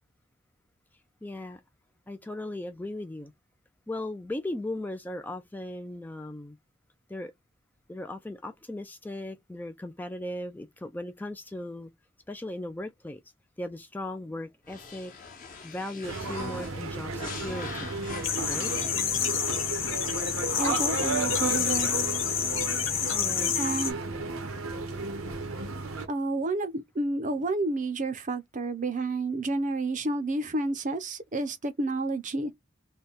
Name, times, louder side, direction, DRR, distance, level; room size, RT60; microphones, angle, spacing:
voice 1, 1.2-1.6 2.1-3.3 3.9-6.6 7.1-7.3 7.9-11.9 12.3-13.2 13.6-15.1 15.6-17.9 18.5-18.7 23.1-23.5, left 1 dB, 10° left, 0.3 m, -37 dB
sound 1, 14.7-19.2, left 5 dB, 40° left, 0.9 m, -43 dB
sound 2, 16.0-26.1, right 3 dB, 85° right, 0.9 m, -33 dB
sound 3, 18.2-23.9, left 9 dB, 70° left, 0.8 m, -29 dB
voice 2, 20.6-21.9 23.5-24.0 26.1-32.5, right 2 dB, 40° right, 0.6 m, -30 dB
3.3 x 2.2 x 3.9 m
head